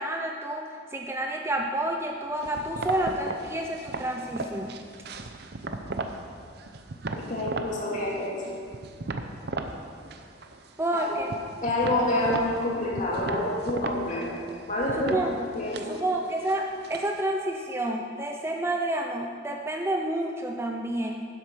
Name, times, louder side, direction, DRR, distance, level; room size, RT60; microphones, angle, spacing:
voice 1, 0.0-4.8 10.8-11.4 15.0-15.3 15.9-21.2, right 1 dB, 15° right, 2 dB, 0.5 m, -29 dB
sound 1, 2.4-6.2 6.6-7.7 8.1-9.8 10.0-10.7 11.0-17.2, right 3 dB, 55° right, 0.7 m, -36 dB
voice 2, 7.1-8.4 10.9-11.1 11.6-14.4 14.7-15.2 15.5-15.9, left 1 dB, 40° left, -4 dB, 2.5 m, -27 dB
11.5 x 7.9 x 5.8 m, 2.2 s
head